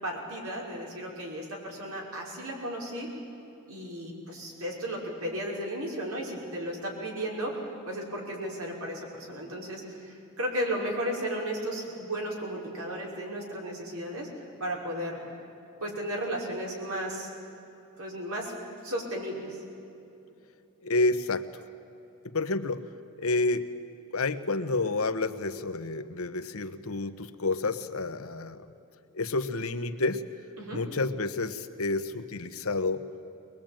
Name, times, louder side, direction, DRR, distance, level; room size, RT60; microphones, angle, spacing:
voice 1, 0.0-3.1 3.7-14.3 14.6-15.2 15.8-17.3 18.0-18.5 18.8-19.6 30.6-30.8, equal, 85° right, -2 dB, 5.8 m, -34 dB
voice 2, 20.8-21.5 22.2-22.8 23.2-23.7 24.1-28.7 29.1-30.2 30.7-33.0, left 3 dB, 85° left, 9 dB, 1.1 m, -29 dB
23.5 x 21.0 x 9.0 m, 2.9 s
head